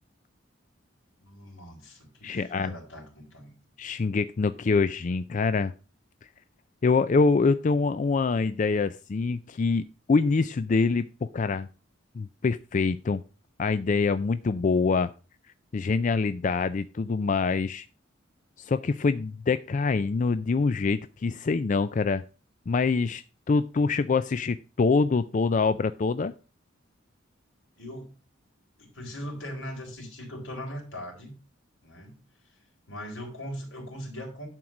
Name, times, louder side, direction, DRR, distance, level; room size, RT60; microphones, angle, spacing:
voice 1, 1.2-3.5 27.8-28.2 28.8-31.3 31.8-32.6 32.9-34.5, equal, 80° left, 1 dB, 4.2 m, -40 dB
voice 2, 2.2-2.7 3.8-5.7 6.2-6.3 6.8-11.7 12.1-13.2 13.6-15.1 15.7-17.9 18.6-22.2 22.7-26.3, left 4 dB, 40° left, 13 dB, 0.4 m, -25 dB
11.0 x 4.6 x 6.2 m, 0.34 s
head